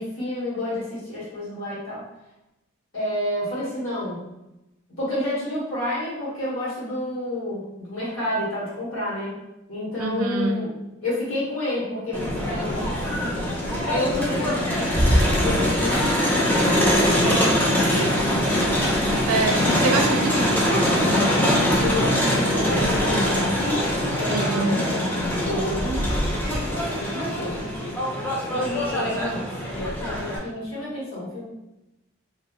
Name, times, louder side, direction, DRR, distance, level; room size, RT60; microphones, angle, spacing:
voice 1, 0.0-2.0 2.9-4.2 5.0-9.4 9.7-10.7 11.0-13.5 13.8-18.3 18.6-18.9 21.8-23.9 24.1-28.0 28.5-31.5, left 1 dB, 75° left, -8 dB, 1.5 m, -30 dB
voice 2, 10.0-10.6 19.3-21.2 24.3-24.9, right 3 dB, 90° right, 5 dB, 0.4 m, -25 dB
Crowd, 12.1-30.4, equal, 10° left, 0.5 m, -23 dB
2.9 x 2.6 x 2.4 m, 0.94 s
head